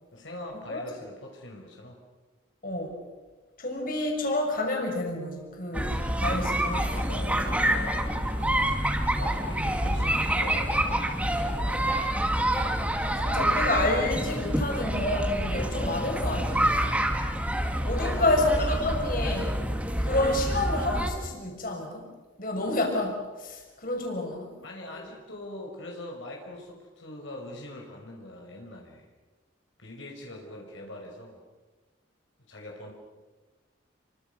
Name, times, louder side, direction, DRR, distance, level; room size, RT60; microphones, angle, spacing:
voice 1, 0.1-2.0 6.1-8.7 9.2-12.0 18.0-18.7 24.6-29.1 29.8-31.4 32.5-32.9, left 1 dB, 70° left, 0 dB, 5.3 m, -42 dB
voice 2, 2.6-3.0 3.6-7.0 13.2-16.8 17.8-19.6 20.0-22.1 22.4-24.5, left 2 dB, 45° left, 1 dB, 6.4 m, -29 dB
sound 1, 5.7-21.1, right 1 dB, 5° right, 2.3 m, -27 dB
30.0 x 25.0 x 6.8 m, 1.2 s
head